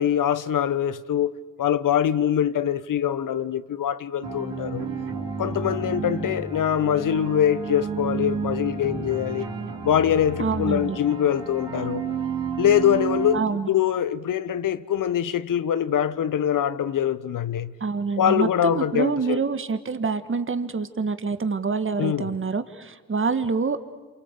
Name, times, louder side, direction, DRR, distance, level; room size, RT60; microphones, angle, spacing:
voice 1, 0.0-1.3 1.6-4.9 5.4-9.4 9.8-12.1 12.6-17.7 18.2-19.4 22.0-22.3, left 10 dB, 65° left, 1.0 m, -23 dB
sound 1, 4.2-13.4, right 5 dB, 80° right, 4.6 m, -31 dB
voice 2, 10.4-11.0 13.3-13.7 17.8-23.8, right 4 dB, 35° right, 1.6 m, -26 dB
28.0 x 23.5 x 8.3 m
supercardioid pair, 45°, 34 cm